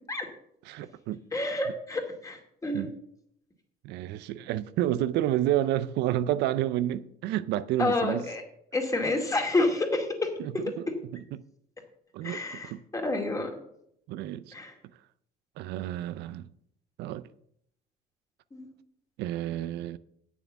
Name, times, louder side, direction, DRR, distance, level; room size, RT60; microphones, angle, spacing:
voice 1, 0.7-1.2 2.7-2.9 3.8-8.3 10.4-11.4 12.1-12.8 14.1-14.5 15.6-16.5 17.0-17.3 19.2-20.0, right 13 dB, 85° right, 0.5 m, -30 dB
voice 2, 1.3-2.9 7.8-8.4 8.7-10.3 12.2-13.5 14.5-14.7 18.5-18.7, left 2 dB, 20° left, 2.2 m, -29 dB
8.6 x 7.1 x 7.0 m
cardioid pair, 110°, 17 cm